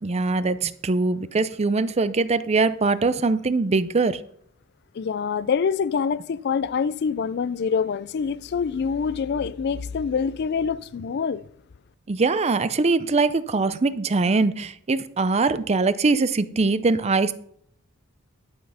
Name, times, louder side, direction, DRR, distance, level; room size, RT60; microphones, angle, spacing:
voice 1, 0.0-4.2 12.1-17.3, right 3 dB, 30° right, 0.5 m, -22 dB
voice 2, 4.9-11.4, left 6 dB, 50° left, 0.3 m, -25 dB
12.0 x 5.7 x 5.6 m
head